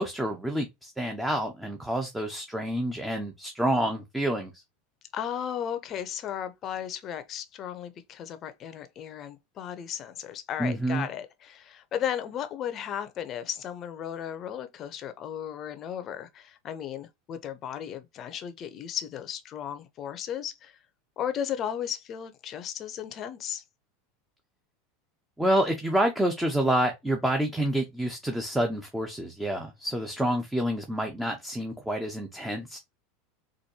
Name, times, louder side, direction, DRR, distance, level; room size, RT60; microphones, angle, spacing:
voice 1, 0.0-4.6 10.6-11.1 25.4-32.8, right 1 dB, 5° right, 0.9 m, -28 dB
voice 2, 5.1-20.8 21.2-23.6, left 9 dB, 40° left, 0.7 m, -35 dB
4.3 x 2.6 x 2.8 m
hypercardioid pair, 100°, 0 cm